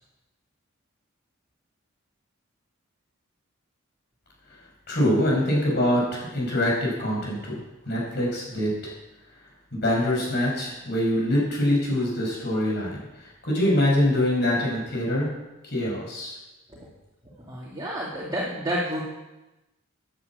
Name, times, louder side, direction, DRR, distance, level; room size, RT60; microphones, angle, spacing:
voice 1, 4.9-7.6 7.9-8.8 9.8-13.1 13.4-15.3 15.6-16.4, left 1 dB, 50° left, -3 dB, 5.2 m, -24 dB
voice 2, 17.3-19.0, equal, 20° right, -6 dB, 2.6 m, -30 dB
11.0 x 10.5 x 8.2 m, 1.0 s
head